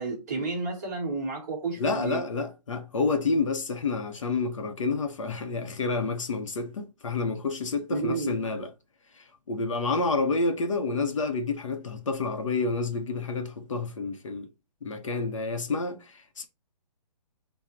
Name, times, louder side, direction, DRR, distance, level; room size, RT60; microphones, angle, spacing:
voice 1, 0.0-2.2 7.9-8.4, right 3 dB, 25° right, 1.0 m, -31 dB
voice 2, 1.8-8.7 9.1-14.5 14.8-16.5, left 3 dB, 50° left, 0.6 m, -29 dB
3.7 x 2.0 x 4.2 m
hypercardioid pair, 170°, 21 cm